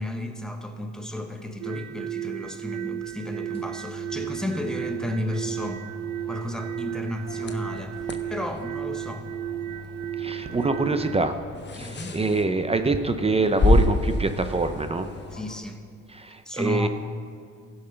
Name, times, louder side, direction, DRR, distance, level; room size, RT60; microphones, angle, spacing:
voice 1, 0.0-5.8 6.3-8.0 8.3-9.3 11.8-12.2 15.3-15.8 16.4-16.9, left 1 dB, ahead, 4 dB, 1.1 m, -33 dB
sound 1, 1.6-11.3, right 12 dB, 80° right, 0.5 m, -34 dB
sound 2, 3.5-15.5, left 5 dB, 20° left, 1.2 m, -44 dB
sound 3, 7.3-15.6, left 2 dB, 35° left, 0.9 m, -29 dB
voice 2, 10.2-11.3 11.7-15.1 16.1-16.9, right 3 dB, 20° right, 8 dB, 0.6 m, -25 dB
15.0 x 5.5 x 5.7 m, 2.2 s
cardioid pair, 90°, 30 cm